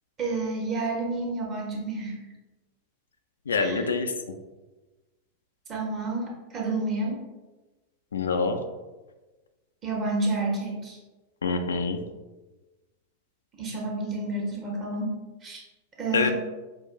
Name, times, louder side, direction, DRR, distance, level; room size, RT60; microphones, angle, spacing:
voice 1, 0.2-2.2 3.6-3.9 5.7-7.2 9.8-11.0 13.6-15.2 15.4-15.6 16.0-16.3, right 2 dB, 30° right, -2 dB, 1.0 m, -30 dB
voice 2, 3.5-4.1 8.1-8.6 11.4-12.0 16.1-16.3, left 4 dB, 70° left, 6 dB, 0.3 m, -25 dB
5.3 x 2.5 x 2.2 m, 1.2 s
figure-of-eight pair, 90°, 0 cm